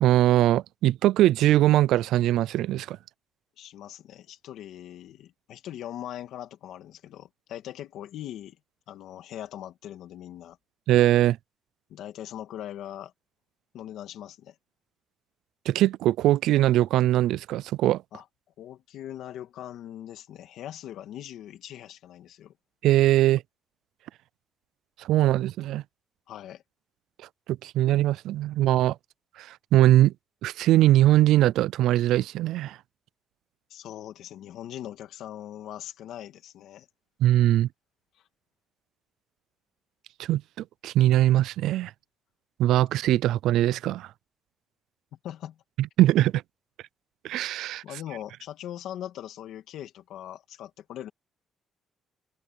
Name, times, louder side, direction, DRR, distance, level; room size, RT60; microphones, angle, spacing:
voice 1, 0.0-3.0 10.9-11.4 15.7-18.0 22.8-23.4 25.0-25.8 27.5-29.0 29.4-30.1 30.4-32.8 37.2-37.7 40.2-41.9 42.6-44.1 45.8-46.3 47.2-47.8, right 14 dB, 85° right, 0.4 m, -21 dB
voice 2, 3.6-8.6 8.9-10.6 11.9-13.1 13.7-14.6 18.1-18.2 18.6-22.5 26.3-26.6 33.7-36.9 45.2-45.6 47.8-51.1, left 11 dB, 75° left, 2.5 m, -40 dB
cardioid pair, 155°, 0 cm